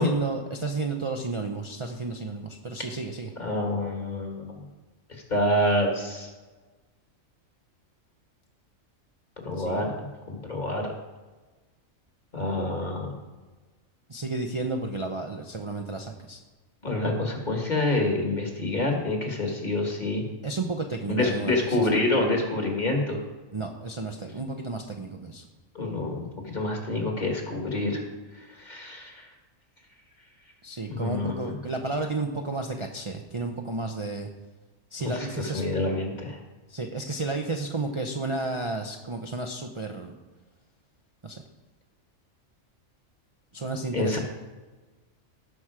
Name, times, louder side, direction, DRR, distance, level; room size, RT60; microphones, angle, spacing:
voice 1, 0.0-3.3 9.6-9.9 14.1-16.4 20.4-21.9 23.5-25.4 30.6-34.3 34.9-35.6 36.7-40.2 41.2-41.4 43.5-44.2, right 3 dB, 30° right, 3 dB, 0.7 m, -32 dB
voice 2, 3.4-4.6 5.3-6.3 9.4-10.9 12.3-13.1 16.8-20.2 21.1-23.2 25.7-26.3 26.5-28.0 28.4-29.2 30.9-31.5 35.0-36.4 43.9-44.2, left 2 dB, 35° left, 0 dB, 2.2 m, -27 dB
18.0 x 6.1 x 4.9 m, 1.2 s
omnidirectional pair, 1.4 m